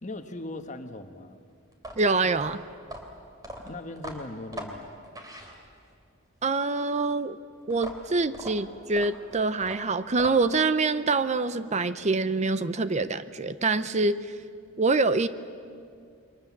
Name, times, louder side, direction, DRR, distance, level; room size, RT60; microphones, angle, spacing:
voice 1, 0.0-1.4 3.6-4.9, left 2 dB, 40° left, 7 dB, 1.5 m, -39 dB
sound 1, 1.7-6.0 7.7-10.7, equal, 20° right, 3.1 m, -41 dB
voice 2, 2.0-2.6 6.4-7.4 7.7-14.3 14.8-15.3, right 3 dB, 35° right, 13 dB, 0.6 m, -25 dB
28.5 x 23.0 x 7.4 m, 2.3 s
head